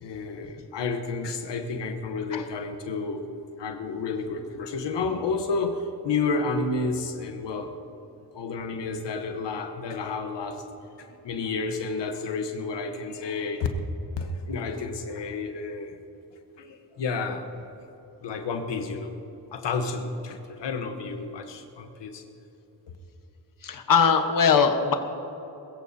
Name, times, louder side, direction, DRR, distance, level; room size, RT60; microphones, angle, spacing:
voice 1, 0.0-3.2 3.6-7.7 8.3-10.6 11.0-13.7 14.2-16.0 16.6-17.5 18.2-19.2 19.5-22.2, left 4 dB, 85° left, 5 dB, 1.1 m, -31 dB
voice 2, 23.6-25.0, left 6 dB, 50° left, 6 dB, 1.2 m, -21 dB
21.5 x 14.5 x 2.7 m, 3.0 s
cardioid pair, 85°, 42 cm